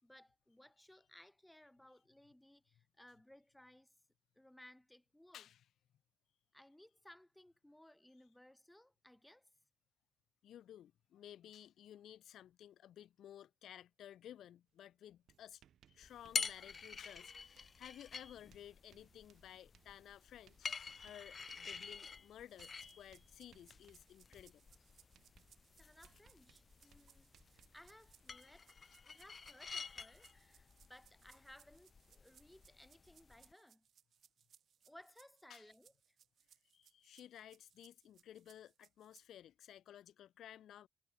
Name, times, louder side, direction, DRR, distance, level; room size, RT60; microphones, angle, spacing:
voice 1, 0.0-3.9 4.4-5.5 6.5-9.5 25.8-28.7 29.1-33.8 34.8-36.2, left 1 dB, 5° left, 6.2 m, -62 dB
voice 2, 5.3-5.6 10.4-15.6 15.9-24.7 35.5-35.7 36.7-40.9, left 11 dB, 85° left, 3.3 m, -56 dB
Writing, 14.7-14.8 15.1-28.2, right 10 dB, 75° right, 5.9 m, -72 dB
sound 1, 16.0-33.5, left 5 dB, 35° left, 1.9 m, -49 dB
sound 2, 22.5-39.3, right 8 dB, 60° right, 7.6 m, -70 dB
wide cardioid pair, 155°, 0 cm